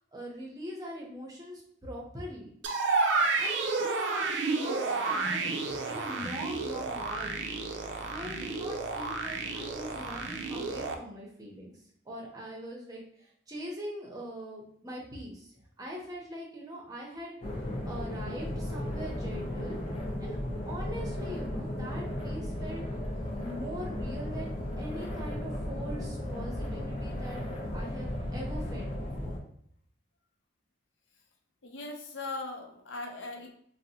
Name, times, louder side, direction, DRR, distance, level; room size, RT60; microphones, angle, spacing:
voice 1, 0.1-2.5 3.4-11.7 12.1-20.4 20.7-22.8 23.4-27.4 27.7-29.3, equal, 20° right, -2 dB, 0.6 m, -42 dB
sound 1, 2.6-10.9, right 3 dB, 80° right, 0.4 m, -31 dB
sound 2, 17.4-29.4, left 1 dB, 30° left, 0.7 m, -35 dB
voice 2, 31.6-33.5, left 2 dB, 80° left, 2 dB, 0.6 m, -39 dB
3.8 x 2.0 x 2.7 m, 0.67 s
head